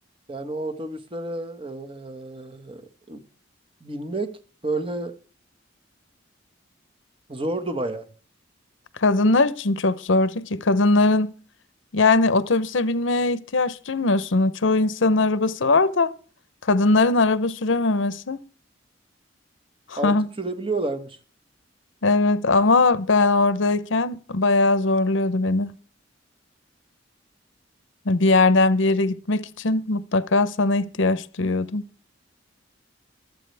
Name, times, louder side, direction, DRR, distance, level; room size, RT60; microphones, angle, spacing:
voice 1, 0.3-2.8 3.1-3.2 3.8-4.3 4.6-5.1 7.3-8.0 20.0-21.2, right 2 dB, 30° right, 1.5 m, -30 dB
voice 2, 9.0-11.3 11.9-16.1 16.6-18.4 19.9-20.3 22.0-25.7 28.1-31.9, left 3 dB, 75° left, 0.8 m, -20 dB
24.0 x 8.4 x 3.4 m
head